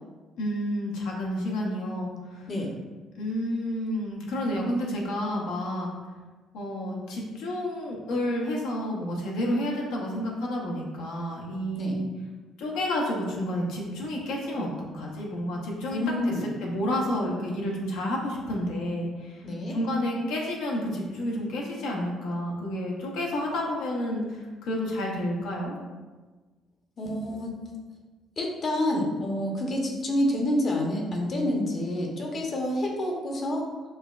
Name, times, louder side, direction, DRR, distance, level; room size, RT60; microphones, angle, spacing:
voice 1, 0.4-2.5 3.1-5.9 6.5-12.1 12.6-14.7 14.9-16.0 16.3-19.5 19.7-25.8, left 1 dB, 80° left, -2 dB, 0.7 m, -30 dB
voice 2, 15.9-16.4 19.4-19.8 27.0-27.5 28.4-33.6, left 1 dB, 50° left, 0 dB, 0.8 m, -28 dB
5.5 x 2.2 x 2.4 m, 1.3 s
supercardioid pair, 65°, 0 cm